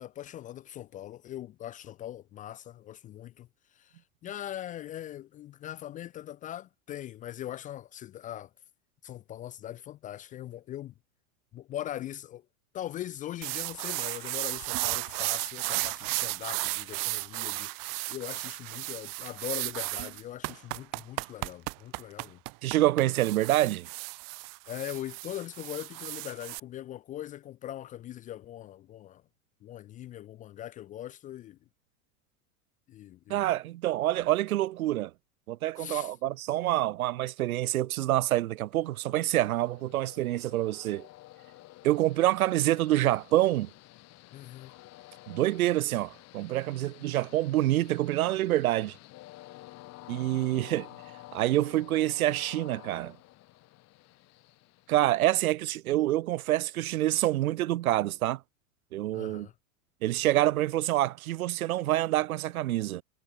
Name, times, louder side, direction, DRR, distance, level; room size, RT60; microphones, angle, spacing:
voice 1, 0.0-8.5 9.0-10.9 11.5-12.5 12.7-22.4 24.7-29.2 29.6-31.6 32.9-33.5 35.8-36.1 44.3-44.7 59.1-59.5, left 12 dB, 20° left, 0.4 m, -41 dB
sound 1, 13.4-26.6, right 34 dB, 45° right, 1.7 m, -34 dB
voice 2, 22.6-23.9 33.3-35.1 35.5-41.1 41.8-43.7 45.3-49.0 50.1-50.9 51.3-53.2 54.9-58.4 58.9-59.5 60.0-63.0, right 15 dB, 75° right, 1.1 m, -27 dB
Train, 38.8-55.5, left 18 dB, 35° left, 1.6 m, -51 dB
hypercardioid pair, 110°, 43 cm